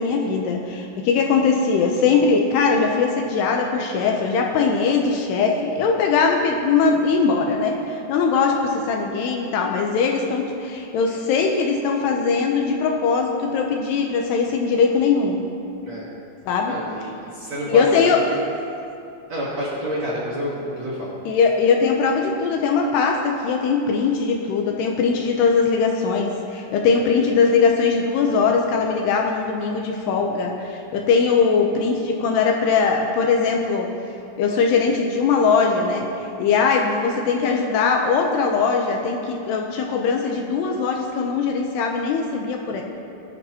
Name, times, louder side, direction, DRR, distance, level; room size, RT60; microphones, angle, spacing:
voice 1, 0.0-15.4 16.5-16.7 17.7-18.2 21.3-33.9 34.4-36.1 36.4-42.8, left 5 dB, 80° left, 1 dB, 2.6 m, -20 dB
voice 2, 16.7-18.4 19.3-21.1, equal, 60° right, -7 dB, 1.8 m, -28 dB
19.5 x 11.5 x 3.0 m, 2.6 s
omnidirectional pair, 5.3 m